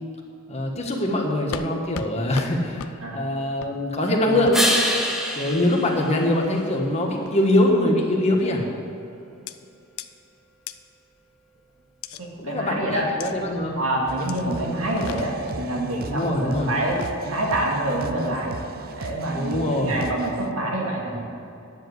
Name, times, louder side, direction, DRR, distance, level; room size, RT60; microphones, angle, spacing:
voice 1, 0.5-4.6 5.3-8.7 12.4-13.8 16.1-16.7 19.3-20.0 21.1-21.2, left 1 dB, 30° left, 0 dB, 1.5 m, -23 dB
sound 1, 1.5-1.7 1.9-2.1 2.3-2.5 2.8-2.9 3.6-3.7 4.5-4.6 5.5-5.9 6.4-6.8 7.3-7.6 8.4-8.6 9.5-9.6 10.0-10.1 10.7-10.8 12.0-12.2 13.2-13.3 14.3-14.4 14.8-15.6 16.7-17.2, left 7 dB, 75° left, 0.5 m, -37 dB
sound 2, 4.5-7.1 12.8-16.8, equal, ahead, 1.0 m, -30 dB
voice 2, 12.2-13.0 13.8-17.0 17.3-18.6 19.0-21.2, right 1 dB, 75° right, -2 dB, 2.3 m, -26 dB
sound 3, 14.1-20.5, right 3 dB, 45° right, 0.5 m, -37 dB
10.5 x 7.2 x 8.1 m, 2.7 s
head